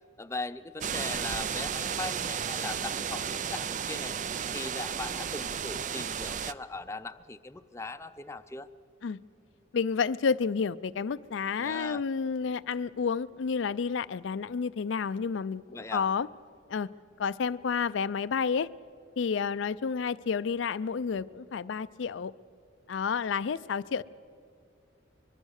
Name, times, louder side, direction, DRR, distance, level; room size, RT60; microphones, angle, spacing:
voice 1, 0.2-4.1 4.5-8.7 11.6-12.0 15.7-16.1, left 3 dB, 15° left, 9 dB, 0.5 m, -39 dB
sound 1, 0.8-6.5, right 7 dB, 40° right, 0.4 m, -33 dB
voice 2, 9.7-16.3 16.7-16.9 17.2-18.7 19.2-22.3 22.9-24.0, left 5 dB, 75° left, 14 dB, 0.4 m, -30 dB
23.5 x 22.0 x 6.5 m, 2.5 s
head